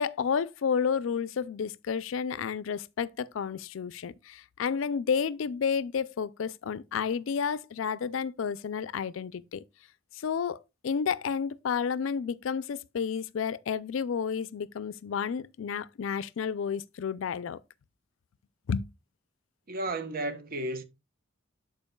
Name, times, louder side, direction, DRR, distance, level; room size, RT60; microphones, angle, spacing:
voice 1, 0.0-9.6 10.2-10.6 10.8-17.6 18.7-18.8, left 6 dB, 75° left, 0.4 m, -31 dB
voice 2, 19.7-20.8, right 2 dB, 45° right, 0.9 m, -33 dB
12.5 x 4.4 x 2.3 m
head